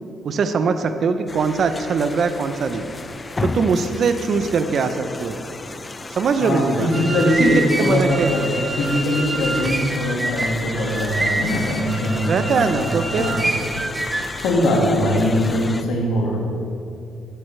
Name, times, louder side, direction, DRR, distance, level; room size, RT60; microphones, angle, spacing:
voice 1, 0.2-2.9 3.4-5.4 6.1-6.9 7.4-8.3 12.2-13.3, right 5 dB, 55° right, 9 dB, 0.6 m, -21 dB
sound 1, 1.3-15.8, left 3 dB, 25° left, 0.4 m, -34 dB
voice 2, 6.4-12.9 13.2-13.5 14.1-16.4, left 1 dB, 85° left, -1 dB, 1.9 m, -21 dB
sound 2, 6.7-14.4, right 2 dB, 15° right, 0.9 m, -27 dB
11.5 x 9.2 x 3.3 m, 2.6 s
cardioid pair, 90°, 0 cm